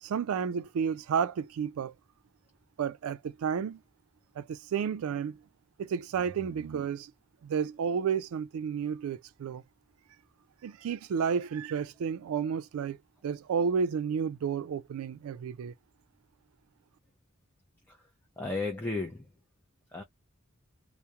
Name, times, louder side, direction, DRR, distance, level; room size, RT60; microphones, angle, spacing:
voice 1, 0.0-1.9 2.8-3.8 4.4-5.4 5.8-7.1 7.4-9.6 10.6-13.0 13.2-15.7, right 6 dB, 85° right, 0.3 m, -31 dB
voice 2, 18.4-19.3 19.9-20.0, left 3 dB, 10° left, 0.4 m, -34 dB
2.3 x 2.0 x 2.8 m
head